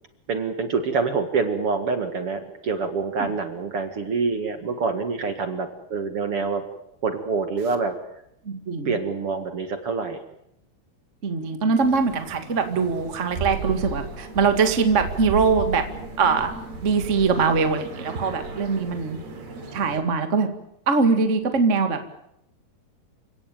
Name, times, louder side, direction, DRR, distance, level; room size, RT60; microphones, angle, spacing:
voice 1, 0.3-6.6 7.0-7.9 8.9-10.2, right 4 dB, 45° right, 8 dB, 2.2 m, -26 dB
voice 2, 8.4-8.9 11.2-15.8 16.2-16.5 16.8-19.2 19.7-20.5 20.8-22.2, right 5 dB, 30° right, 8 dB, 1.5 m, -22 dB
sound 1, 11.8-20.0, right 3 dB, 75° right, 5.7 m, -35 dB
29.0 x 17.0 x 9.2 m, 0.79 s
omnidirectional pair, 4.5 m